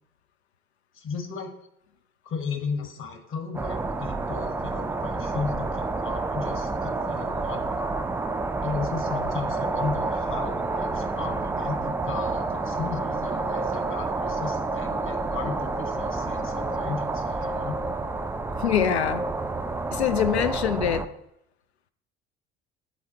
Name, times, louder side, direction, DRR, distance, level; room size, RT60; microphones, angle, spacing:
voice 1, 0.9-1.5 2.2-7.7 8.6-17.8, left 5 dB, 40° left, 5 dB, 1.4 m, -35 dB
sound 1, 3.5-21.1, right 3 dB, 5° right, 0.3 m, -29 dB
voice 2, 18.6-19.2 19.9-21.1, left 9 dB, 80° left, 12 dB, 0.6 m, -24 dB
10.0 x 4.0 x 2.9 m, 0.79 s
figure-of-eight pair, 60°, 32 cm